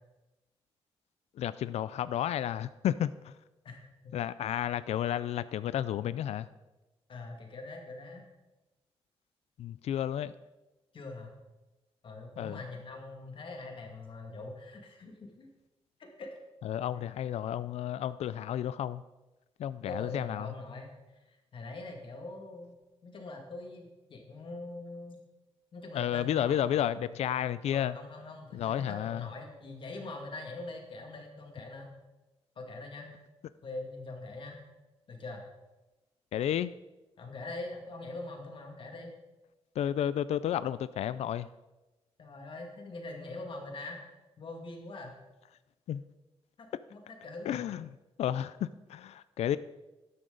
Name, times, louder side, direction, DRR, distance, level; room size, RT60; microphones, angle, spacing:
voice 1, 1.4-3.3 4.1-6.5 9.6-10.3 12.4-12.6 16.6-19.0 19.6-20.5 25.9-28.0 28.5-29.3 36.3-36.7 39.8-41.5 45.9-46.0 47.5-47.9 48.2-49.6, left 10 dB, 85° left, 16 dB, 0.4 m, -32 dB
voice 2, 3.6-4.1 7.1-8.2 10.9-11.4 12.0-15.5 16.0-16.3 18.2-18.4 19.8-22.8 23.0-25.2 25.7-27.2 27.6-31.9 32.6-33.1 33.6-34.6 35.1-35.4 37.2-39.1 42.2-44.0 44.4-45.1 46.6-47.6, left 2 dB, 55° left, 2 dB, 2.2 m, -43 dB
13.0 x 11.5 x 4.0 m, 1.1 s
wide cardioid pair, 125°, 11 cm